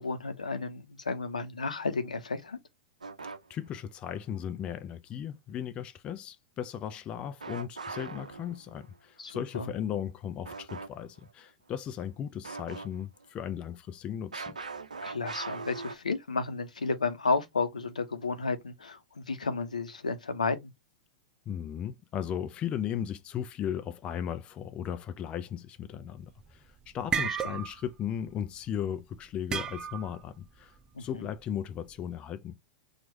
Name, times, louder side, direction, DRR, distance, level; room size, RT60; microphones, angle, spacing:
voice 1, 0.0-2.6 9.2-9.7 15.0-20.7 27.4-27.6 30.9-31.2, left 4 dB, 80° left, 0.8 m, -32 dB
sound 1, 3.0-3.8 7.4-8.9 10.4-10.9 11.2-11.3 12.4-13.2 14.3-16.0, right 4 dB, 80° right, 0.6 m, -40 dB
voice 2, 3.5-14.6 21.5-32.5, left 9 dB, 30° left, 0.5 m, -36 dB
sound 2, 26.2-26.5 26.9-27.9 28.2-28.5 29.5-30.2, right 7 dB, 20° right, 0.6 m, -32 dB
4.5 x 2.5 x 3.1 m
figure-of-eight pair, 100°, 4 cm